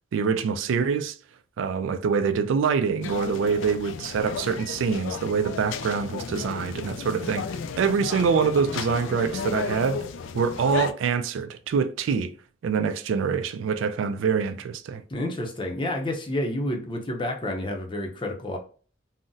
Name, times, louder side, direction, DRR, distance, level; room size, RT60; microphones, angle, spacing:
voice 1, 0.1-1.2 1.6-7.4 7.8-10.1 10.3-12.3 12.6-15.0, right 6 dB, 85° right, 0.3 m, -25 dB
sound 1, 3.0-10.9, left 6 dB, 85° left, 0.3 m, -34 dB
voice 2, 15.1-18.6, left 1 dB, 25° left, 0.5 m, -29 dB
3.8 x 2.0 x 2.5 m
head